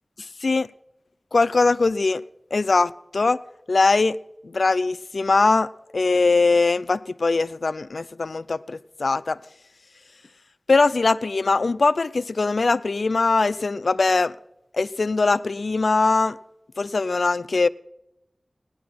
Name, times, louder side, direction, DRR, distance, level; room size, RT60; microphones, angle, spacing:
voice 1, 0.2-0.7 1.3-2.2 2.5-3.4 3.7-4.2 4.4-9.4 10.7-14.3 14.7-16.4 16.8-17.7, left 3 dB, 80° left, 0.4 m, -21 dB
18.0 x 10.5 x 6.0 m
wide cardioid pair, 40°, 0 cm